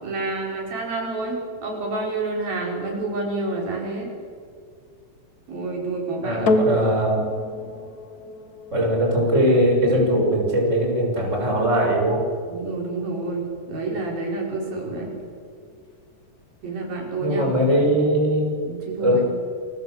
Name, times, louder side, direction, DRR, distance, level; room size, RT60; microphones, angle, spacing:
voice 1, 0.0-4.1 5.5-6.6 12.5-15.1 16.6-17.7 18.6-19.2, right 3 dB, 90° right, -1 dB, 7.2 m, -29 dB
voice 2, 6.2-7.2 8.7-12.2 17.2-18.6 19.0-19.2, equal, 20° right, -1 dB, 6.7 m, -20 dB
sound 1, 6.5-15.0 15.7-15.8, equal, 40° left, 1.3 m, -31 dB
29.5 x 24.5 x 8.2 m, 2.1 s
omnidirectional pair, 4.1 m